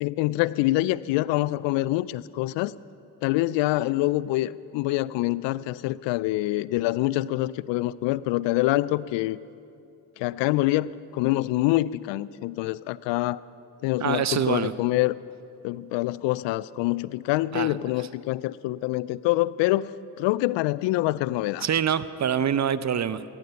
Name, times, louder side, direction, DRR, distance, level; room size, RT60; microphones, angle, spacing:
voice 1, 0.0-2.7 3.2-9.4 10.2-13.4 13.8-15.2 15.6-19.9 20.2-21.7, left 17 dB, 75° left, 20 dB, 0.5 m, -25 dB
voice 2, 14.0-14.7 17.5-17.8 21.6-23.2, right 8 dB, 40° right, 16 dB, 0.7 m, -25 dB
16.0 x 14.0 x 5.7 m, 2.5 s
hypercardioid pair, 45°, 44 cm